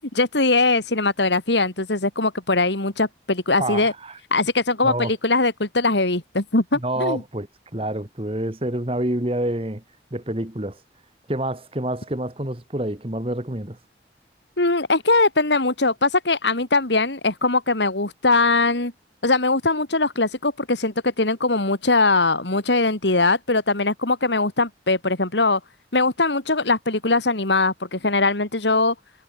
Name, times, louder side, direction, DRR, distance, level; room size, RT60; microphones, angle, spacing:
voice 1, 0.1-3.9 4.3-7.2 14.6-18.9 19.2-25.6 25.9-28.9, left 3 dB, 85° left, 3.0 m, -21 dB
voice 2, 3.6-4.2 4.8-5.1 6.7-7.5 7.7-9.8 10.1-10.8 11.3-13.8, right 1 dB, 30° right, 1.8 m, -27 dB
head